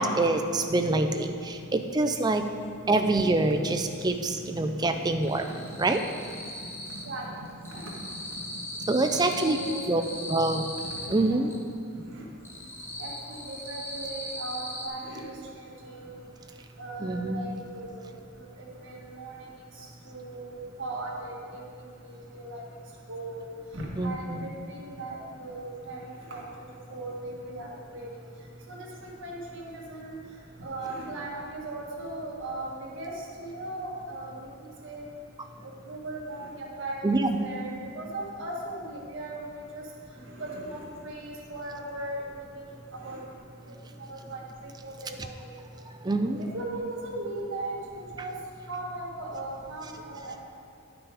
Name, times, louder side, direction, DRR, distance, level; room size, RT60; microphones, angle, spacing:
voice 1, 0.0-2.4 2.9-6.0 8.9-9.6 9.9-10.0 10.3-10.6 11.1-11.5 17.0-17.4 24.0-24.4 37.0-37.4 46.0-46.4, right 2 dB, 20° right, 7 dB, 0.4 m, -25 dB
sound 1, 2.2-3.3 3.6-4.3 4.5-7.2 7.4-11.6 12.0-14.9, left 1 dB, 10° left, 1.0 m, -39 dB
sound 2, 3.5-11.4, equal, 75° right, 2.0 m, -45 dB
voice 2, 9.1-10.4 10.8-11.0 11.3-11.4 12.1-12.3 13.0-16.2 16.8-18.1 18.4-22.6 23.1-23.5 23.7-26.5 26.9-28.2 28.7-30.2 30.6-35.0 35.6-39.8 40.3-43.2 43.7-45.5 46.4-48.3 48.7-50.5, right 2 dB, 55° right, -3 dB, 1.7 m, -38 dB
11.0 x 6.1 x 4.8 m, 2.4 s
head